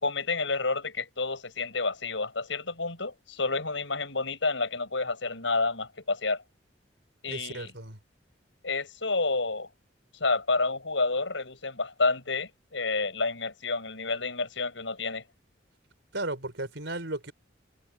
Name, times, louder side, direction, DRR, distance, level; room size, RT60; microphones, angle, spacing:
voice 1, 0.0-6.4 7.2-7.7 8.6-9.7 10.2-15.2, left 3 dB, 80° left, 5.8 m, -29 dB
voice 2, 7.3-8.0 16.1-17.3, right 2 dB, 70° right, 4.1 m, -35 dB
head